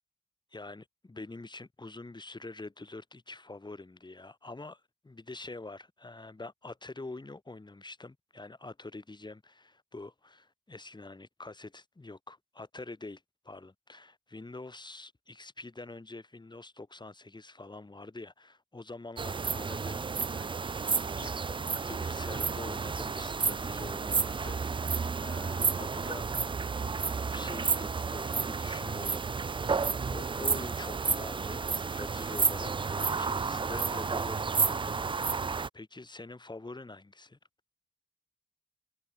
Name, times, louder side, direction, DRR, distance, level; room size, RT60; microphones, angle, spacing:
voice 1, 0.5-20.1 20.3-20.9 21.2-21.5 21.9-26.3 27.3-29.7 30.1-32.7 33.2-35.4 35.7-37.4, left 2 dB, 25° left, 4.6 m, -45 dB
sound 1, 19.2-35.7, right 5 dB, 30° right, 0.5 m, -31 dB
cardioid pair, 60°, 18 cm